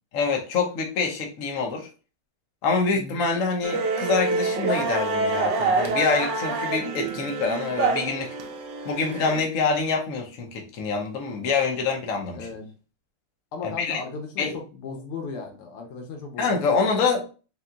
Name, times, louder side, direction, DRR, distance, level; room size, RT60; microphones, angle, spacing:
voice 1, 0.1-1.9 2.6-8.3 8.8-12.5 13.6-14.0 14.4-14.5 16.4-17.2, left 4 dB, 55° left, 2 dB, 0.9 m, -25 dB
sound 1, 3.6-9.4, right 3 dB, 75° right, 1.1 m, -26 dB
voice 2, 12.3-12.7 13.5-17.0, left 4 dB, 85° left, 3 dB, 1.8 m, -36 dB
4.3 x 2.3 x 3.7 m, 0.34 s
omnidirectional pair, 2.4 m